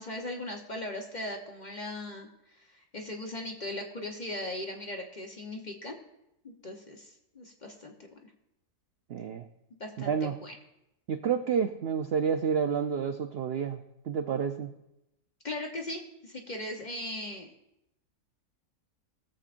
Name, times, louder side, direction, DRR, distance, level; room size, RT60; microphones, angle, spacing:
voice 1, 0.0-6.0 6.4-7.9 8.2-8.3 9.8-10.5 15.4-17.5, left 1 dB, 35° left, 2 dB, 0.8 m, -39 dB
voice 2, 9.1-9.4 10.0-10.4 11.1-14.7, right 7 dB, 75° right, 7 dB, 0.5 m, -29 dB
20.5 x 7.3 x 2.5 m, 0.87 s
omnidirectional pair, 1.6 m